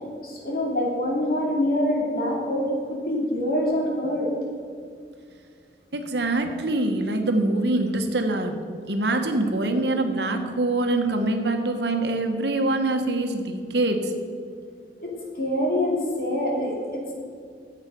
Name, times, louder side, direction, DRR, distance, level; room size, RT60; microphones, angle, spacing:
voice 1, 0.2-4.3 15.0-17.1, left 1 dB, 55° left, -2 dB, 2.9 m, -25 dB
voice 2, 5.9-8.6 8.9-14.1, right 2 dB, 75° right, 5 dB, 1.3 m, -24 dB
13.5 x 8.1 x 5.3 m, 2.2 s
head